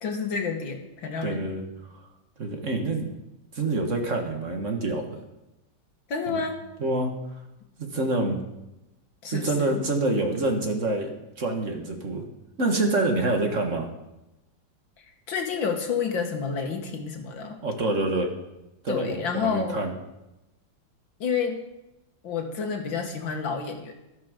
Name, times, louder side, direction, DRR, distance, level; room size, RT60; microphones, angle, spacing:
voice 1, 0.0-1.5 6.1-6.6 9.2-9.8 15.3-17.6 18.9-19.8 21.2-21.6 22.2-23.9, left 5 dB, 80° left, 3 dB, 2.4 m, -29 dB
voice 2, 1.2-1.6 2.4-3.1 3.5-5.2 6.3-6.4 6.8-7.1 7.8-8.4 9.3-11.1 11.4-12.2 12.6-13.9 17.4-18.3 18.8-19.9, right 2 dB, 40° right, 3 dB, 2.0 m, -26 dB
12.5 x 12.5 x 5.2 m, 0.95 s
omnidirectional pair, 2.1 m